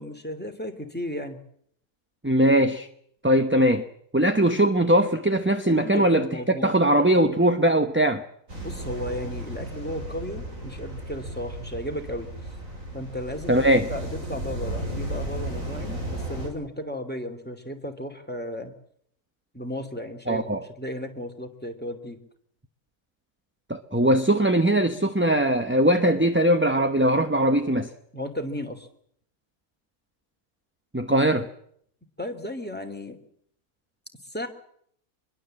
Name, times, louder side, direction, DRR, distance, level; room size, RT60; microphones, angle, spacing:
voice 1, 0.0-1.4 5.7-6.7 8.6-12.3 12.9-18.7 19.5-22.2 28.1-28.9 32.2-33.2 34.3-34.5, left 1 dB, 5° left, 2.7 m, -34 dB
voice 2, 2.2-2.9 3.2-3.8 4.1-8.2 13.5-13.9 20.3-20.6 23.7-27.9 30.9-31.5, right 1 dB, 10° right, 0.9 m, -21 dB
sound 1, 8.5-16.5, right 1 dB, 60° right, 6.4 m, -34 dB
24.5 x 22.0 x 7.7 m
omnidirectional pair, 1.6 m